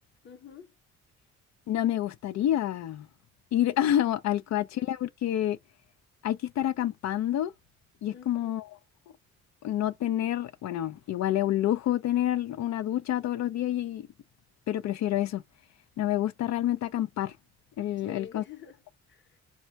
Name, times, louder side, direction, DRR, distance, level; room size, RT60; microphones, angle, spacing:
voice 1, 0.2-0.7 8.1-8.6 18.0-18.8 19.1-19.4, left 8 dB, 40° left, 0.9 m, -47 dB
voice 2, 1.7-3.1 3.5-5.6 6.2-7.5 8.0-8.6 9.6-14.1 14.7-15.4 16.0-17.3 17.8-18.4, left 12 dB, 65° left, 0.5 m, -28 dB
4.0 x 2.3 x 4.4 m
cardioid pair, 90°, 30 cm